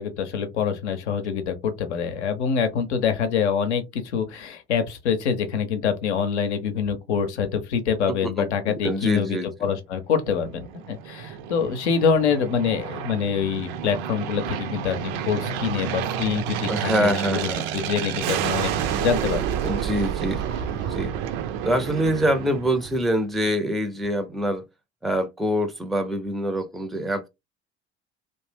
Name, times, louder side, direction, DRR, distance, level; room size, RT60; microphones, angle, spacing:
voice 1, 0.0-19.4, left 7 dB, 80° left, 0.7 m, -25 dB
voice 2, 8.1-9.5 16.7-17.6 19.6-20.4 20.9-21.1 21.6-24.6 25.0-27.3, equal, ahead, 0.5 m, -25 dB
Aircraft, 10.4-23.2, right 9 dB, 60° right, 0.5 m, -30 dB
sound 1, 14.8-17.6 18.4-21.1, right 4 dB, 80° right, 0.9 m, -41 dB
2.6 x 2.1 x 3.3 m
figure-of-eight pair, 60°, 34 cm